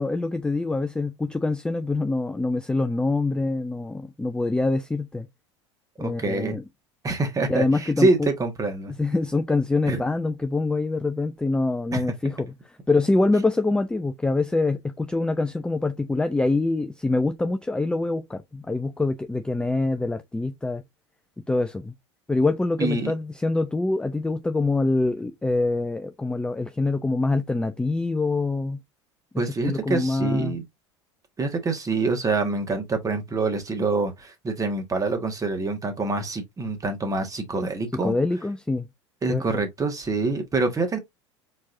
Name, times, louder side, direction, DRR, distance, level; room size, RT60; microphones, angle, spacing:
voice 1, 0.0-5.3 6.0-6.6 7.5-8.3 8.9-20.8 21.5-21.9 22.3-28.8 29.6-30.6 38.0-38.9 39.3-39.4, left 2 dB, 5° left, 0.5 m, -25 dB
voice 2, 6.0-6.6 7.0-8.9 9.8-10.0 11.9-12.0 22.8-23.1 29.4-30.6 31.4-38.1 39.2-41.0, right 3 dB, 20° right, 1.6 m, -26 dB
4.6 x 4.3 x 2.6 m
figure-of-eight pair, 80°, 15 cm